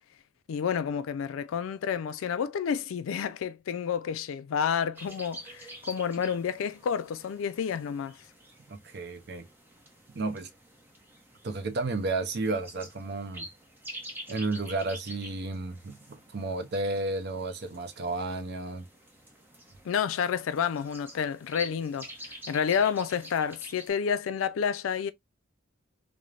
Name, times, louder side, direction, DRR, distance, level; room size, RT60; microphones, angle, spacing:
voice 1, 0.5-8.2 19.8-22.1 22.5-25.1, left 7 dB, 80° left, 0.4 m, -29 dB
sound 1, 4.9-23.9, equal, 10° right, 0.7 m, -48 dB
voice 2, 8.7-9.5 10.1-10.5 11.4-13.5 14.3-18.9, right 3 dB, 55° right, 0.6 m, -32 dB
3.2 x 2.0 x 2.4 m
head